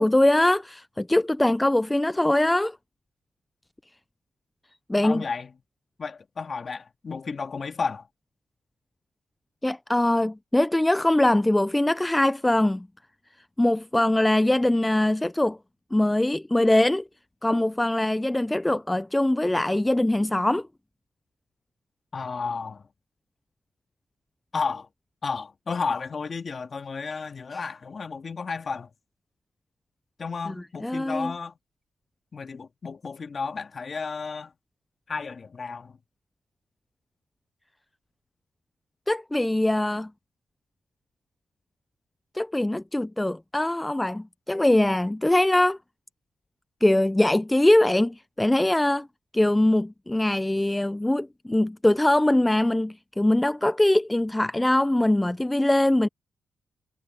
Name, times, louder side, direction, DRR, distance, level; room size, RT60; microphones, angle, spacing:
voice 1, 0.0-2.8 4.9-5.2 9.6-12.9 13.6-15.6 15.9-17.0 17.4-20.7 30.5-31.3 39.1-40.1 42.3-45.8 46.8-49.1 49.3-56.1, left 1 dB, 10° left, 0.5 m, -22 dB
voice 2, 5.0-5.5 6.0-8.1 22.1-22.9 24.5-24.9 25.2-28.9 30.2-31.5 32.3-34.5 35.1-36.0, left 5 dB, 45° left, 2.1 m, -32 dB
cardioid pair, 70°, 0 cm